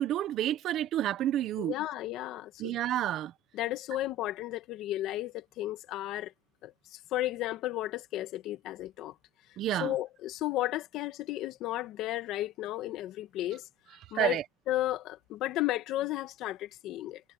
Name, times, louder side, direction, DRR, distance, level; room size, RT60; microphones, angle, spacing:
voice 1, 0.0-1.7 2.6-3.3 9.6-9.9 14.1-14.4, right 12 dB, 50° right, 1.3 m, -29 dB
voice 2, 1.6-2.8 3.5-6.3 6.6-9.1 9.7-13.6 14.1-14.4 14.7-17.2, left 15 dB, 55° left, 1.6 m, -34 dB
cardioid pair, 140°, 0 cm